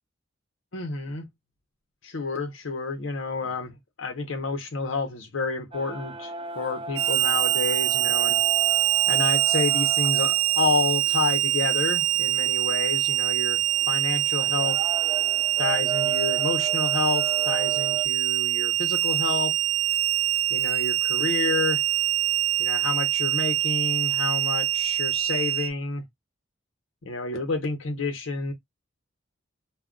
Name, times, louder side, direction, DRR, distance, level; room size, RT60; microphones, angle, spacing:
voice 1, 0.7-1.3 2.0-8.4 9.1-13.6 13.9-14.8 15.6-19.5 20.5-21.8 22.6-26.0 27.0-28.5, left 3 dB, 75° left, 0.8 m, -29 dB
sound 1, 5.7-18.1, right 5 dB, 25° right, 0.3 m, -37 dB
Harmonica, 6.9-25.7, right 14 dB, 80° right, 0.5 m, -24 dB
2.3 x 2.2 x 3.6 m
head